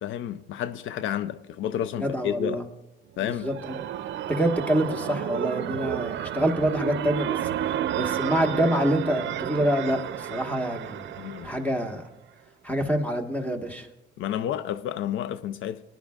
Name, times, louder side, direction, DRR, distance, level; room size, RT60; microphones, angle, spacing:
voice 1, 0.0-2.6 3.2-3.5 11.2-11.5 14.2-15.9, left 10 dB, 80° left, 0.5 m, -30 dB
voice 2, 2.0-2.6 3.2-3.8 4.3-7.5 8.0-12.0 12.6-13.9, equal, 5° left, 1.5 m, -26 dB
sound 1, 3.2-12.0, right 11 dB, 65° right, 0.5 m, -31 dB
19.5 x 11.0 x 2.4 m
cardioid pair, 90°, 20 cm